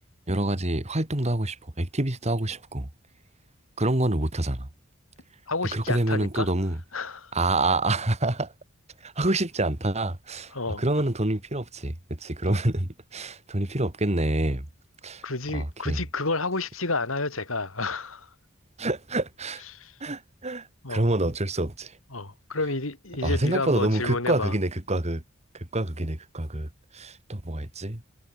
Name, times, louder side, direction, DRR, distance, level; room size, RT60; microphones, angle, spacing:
voice 1, 0.3-2.9 3.8-4.7 5.7-6.8 7.3-8.5 9.0-14.7 15.0-15.2 15.5-16.0 18.8-19.6 20.0-22.0 23.2-25.2 25.5-28.0, right 1 dB, 30° right, 2.4 m, -27 dB
voice 2, 5.5-6.5 6.9-7.3 10.5-10.8 12.5-12.6 15.2-18.3 19.7-20.0 20.8-21.0 22.1-24.5, left 3 dB, 75° left, 3.8 m, -30 dB
head